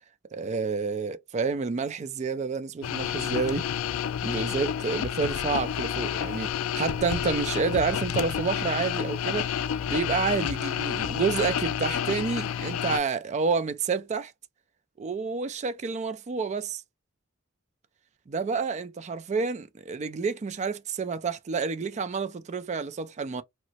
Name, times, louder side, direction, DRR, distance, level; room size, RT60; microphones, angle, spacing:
voice 1, 0.3-3.7 4.2-9.5 9.9-14.3 15.0-16.8 18.3-23.4, right 5 dB, 35° right, 0.3 m, -29 dB
sound 1, 2.8-13.0, left 9 dB, 90° left, 0.3 m, -30 dB
2.9 x 2.0 x 2.7 m
head